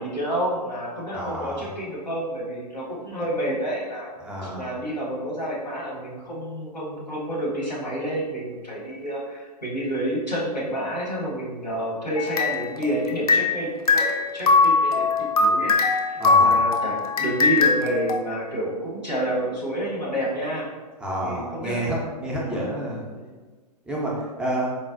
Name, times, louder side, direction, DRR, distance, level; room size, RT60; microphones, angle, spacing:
voice 1, 0.0-4.1 4.4-15.1 15.4-20.7 21.2-21.8 22.5-22.8 23.1-23.2, right 1 dB, 85° left, -4 dB, 1.1 m, -29 dB
voice 2, 1.1-1.6 4.2-4.6 16.2-16.7 21.0-23.0 23.9-24.7, right 1 dB, 5° right, -5 dB, 0.3 m, -29 dB
sound 1, 12.2-13.6 13.9-18.2, left 4 dB, 60° left, 0.5 m, -21 dB
4.0 x 2.0 x 2.4 m, 1.3 s
figure-of-eight pair, 110°, 21 cm